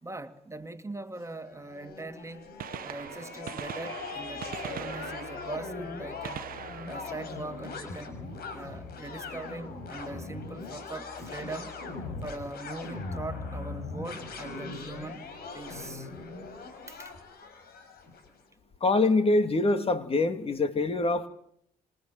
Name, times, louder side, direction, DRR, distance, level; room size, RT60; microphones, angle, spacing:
voice 1, 0.0-2.5 2.8-6.4 6.9-8.2 8.5-11.7 12.2-15.2 15.5-16.1 16.9-17.1, right 2 dB, 15° right, 2.3 m, -41 dB
sound 1, 1.2-18.3, left 4 dB, 70° left, 6.0 m, -40 dB
Gunshot gunfire, 2.5-8.3 10.3-10.4 11.4-11.5 13.1-13.2 14.6-14.7 14.9-15.0, right 11 dB, 60° right, 1.1 m, -42 dB
voice 2, 18.8-21.3, left 2 dB, 35° left, 2.7 m, -24 dB
27.0 x 27.0 x 7.4 m
supercardioid pair, 60°, 17 cm